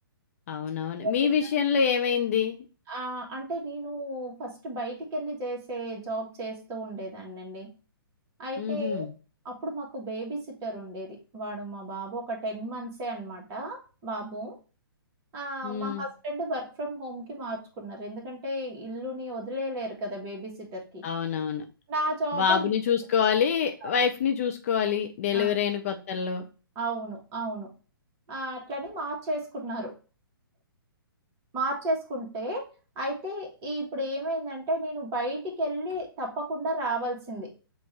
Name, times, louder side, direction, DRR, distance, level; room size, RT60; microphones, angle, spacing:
voice 1, 0.5-2.6 8.6-9.1 15.6-16.0 21.0-21.6 22.3-26.4, left 7 dB, 35° left, 5 dB, 0.5 m, -26 dB
voice 2, 2.9-7.7 8.4-9.0 9.4-14.5 15.3-21.0 21.9-22.7 23.8-23.9 25.3-25.5 26.7-27.7 28.3-29.9 31.5-32.6 32.9-37.5, right 1 dB, 20° right, 0 dB, 1.3 m, -33 dB
6.8 x 2.5 x 3.1 m, 0.35 s
figure-of-eight pair, 125°, 12 cm